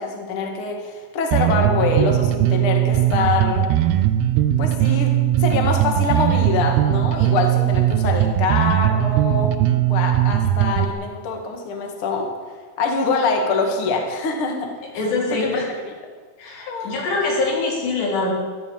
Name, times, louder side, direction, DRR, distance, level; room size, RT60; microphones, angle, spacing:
voice 1, 0.0-3.7 4.6-9.5 9.8-12.3 12.8-14.7 14.9-15.1 15.3-15.9 16.7-17.0, left 4 dB, 45° left, 2 dB, 2.0 m, -24 dB
Bass guitar, 1.3-10.9, right 12 dB, 80° right, 2.6 m, -19 dB
voice 2, 15.0-15.7 16.4-18.3, left 3 dB, 90° left, -3 dB, 5.7 m, -23 dB
13.0 x 12.5 x 7.2 m, 1.6 s
omnidirectional pair, 4.8 m